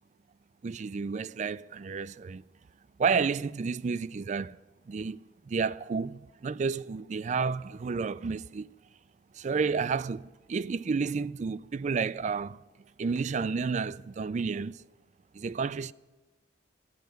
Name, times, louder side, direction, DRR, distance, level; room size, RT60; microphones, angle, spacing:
voice 1, 0.6-2.4 3.0-4.6 4.9-8.7 9.3-12.6 13.0-14.8 15.3-15.9, right 5 dB, 40° right, 0.4 m, -31 dB
12.0 x 10.0 x 9.3 m
head